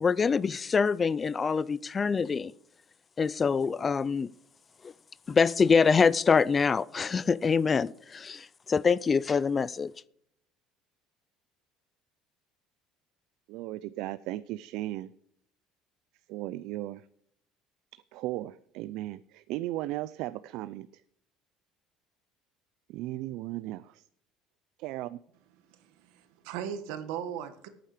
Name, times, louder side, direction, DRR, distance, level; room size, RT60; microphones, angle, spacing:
voice 1, 0.0-2.5 3.2-4.3 4.8-4.9 5.3-9.9, left 5 dB, 25° left, 0.3 m, -25 dB
voice 2, 13.5-15.1 16.3-17.0 17.9-20.9 22.9-24.0 24.8-25.2, right 16 dB, 70° right, 0.4 m, -36 dB
voice 3, 25.7-27.7, right 9 dB, 85° right, 1.5 m, -38 dB
14.0 x 8.9 x 5.0 m
cardioid pair, 145°, 0 cm